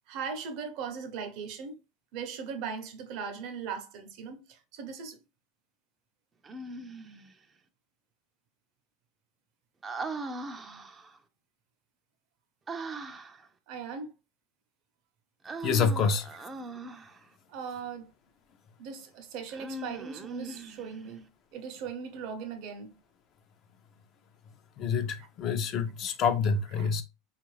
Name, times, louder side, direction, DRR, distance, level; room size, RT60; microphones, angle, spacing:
voice 1, 0.1-1.8 2.1-5.2 13.7-14.1 17.5-18.1 18.8-22.9 25.2-25.3 26.8-27.0, right 6 dB, 60° right, 0.7 m, -39 dB
Human voice, 6.4-7.3 9.8-11.2 12.7-13.5 15.4-17.2 19.5-21.1, right 3 dB, 20° right, 0.4 m, -40 dB
voice 2, 15.6-16.3 24.8-27.0, left 5 dB, 45° left, 0.5 m, -27 dB
3.0 x 2.4 x 3.1 m
supercardioid pair, 125°, 0 cm